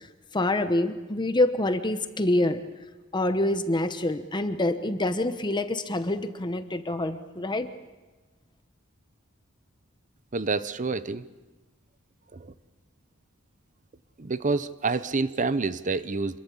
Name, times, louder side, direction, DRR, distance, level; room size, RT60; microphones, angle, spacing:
voice 1, 0.3-2.6 3.1-7.7, left 1 dB, 20° left, 9 dB, 1.0 m, -26 dB
voice 2, 10.3-11.3 12.3-12.5 14.2-16.4, right 4 dB, 35° right, 14 dB, 0.7 m, -28 dB
26.5 x 22.5 x 7.2 m, 1.2 s
head